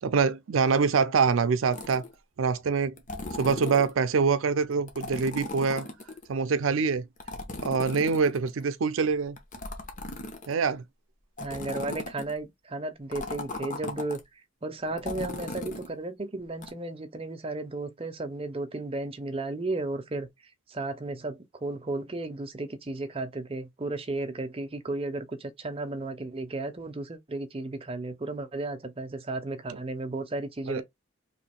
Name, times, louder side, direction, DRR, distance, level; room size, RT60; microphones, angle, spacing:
voice 1, 0.0-2.0 2.4-2.9 3.4-5.9 6.3-7.0 7.6-9.4 10.5-10.8 29.7-29.8 30.7-30.8, right 5 dB, 80° right, 0.5 m, -25 dB
sound 1, 1.7-2.1 3.0-3.9 4.9-6.2 7.2-8.6 9.4-10.7 11.4-12.4 13.1-14.2 15.0-15.9 16.6-16.7, left 2 dB, 40° left, 0.9 m, -37 dB
voice 2, 11.4-14.2 14.6-20.3 20.7-30.8, right 2 dB, 30° right, 0.6 m, -34 dB
3.1 x 2.7 x 4.3 m
head